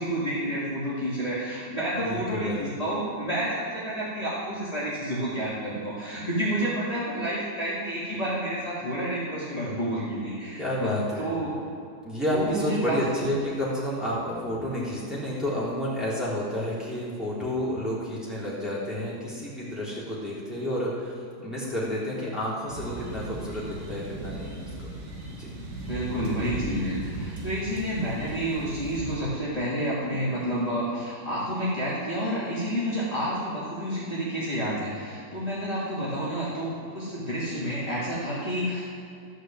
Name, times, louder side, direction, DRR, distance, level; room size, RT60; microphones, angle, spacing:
voice 1, 0.0-11.5 12.3-13.0 22.2-22.3 25.9-38.8, equal, 20° left, -10 dB, 2.8 m, -30 dB
voice 2, 2.0-2.6 10.6-11.3 12.0-24.9 25.4-25.5, left 1 dB, ahead, -8 dB, 3.7 m, -30 dB
sound 1, 22.7-29.2, right 2 dB, 80° right, 2.6 m, -37 dB
13.5 x 6.5 x 7.7 m, 2.5 s
omnidirectional pair, 1.7 m